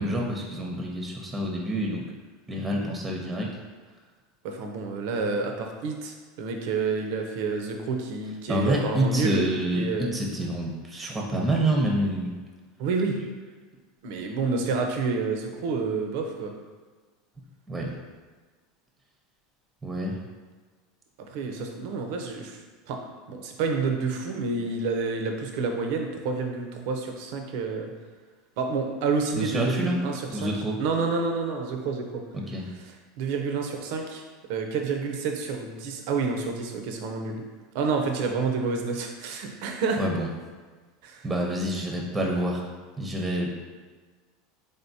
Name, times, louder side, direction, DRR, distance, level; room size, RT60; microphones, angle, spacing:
voice 1, 0.0-2.0 2.5-3.5 8.5-12.3 17.7-18.0 19.8-20.1 29.4-30.0 30.3-30.8 32.3-32.6 40.0-40.3 41.2-42.6 43.0-43.5, right 1 dB, 15° right, 0 dB, 0.7 m, -27 dB
voice 2, 4.4-9.4 9.7-10.2 11.0-11.1 12.8-13.2 14.0-16.5 21.3-22.6 22.9-23.0 23.3-27.9 28.6-30.5 30.8-32.2 33.2-34.2 34.5-37.4 37.7-40.0 41.0-41.3, right 4 dB, 70° right, 3 dB, 0.6 m, -29 dB
3.7 x 3.5 x 2.7 m, 1.4 s
supercardioid pair, 105°, 0 cm